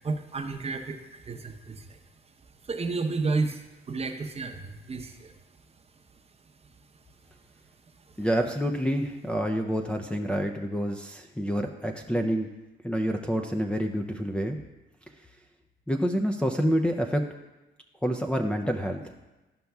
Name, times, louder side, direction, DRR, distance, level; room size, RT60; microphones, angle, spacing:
voice 1, 0.0-2.0 2.6-5.3, right 3 dB, 30° right, 4 dB, 0.8 m, -32 dB
voice 2, 8.2-12.5 12.8-14.6 15.9-17.3 18.0-19.1, equal, 5° left, 2 dB, 0.5 m, -28 dB
12.5 x 5.3 x 2.3 m, 1.1 s
cardioid pair, 90°, 20 cm